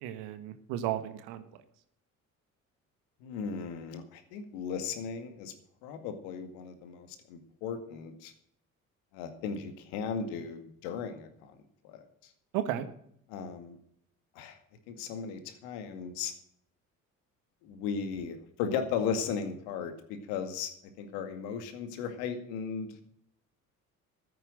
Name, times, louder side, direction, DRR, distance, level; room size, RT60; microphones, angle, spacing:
voice 1, 0.0-1.4 12.5-12.9, right 12 dB, 65° right, 10 dB, 1.5 m, -34 dB
voice 2, 3.2-5.5 5.8-8.3 9.1-11.5 11.8-12.0 13.3-13.8 14.4-14.6 14.9-16.3 17.6-20.7 21.0-23.0, left 6 dB, 70° left, 8 dB, 2.2 m, -36 dB
13.5 x 9.6 x 6.4 m, 0.68 s
figure-of-eight pair, 55°, 41 cm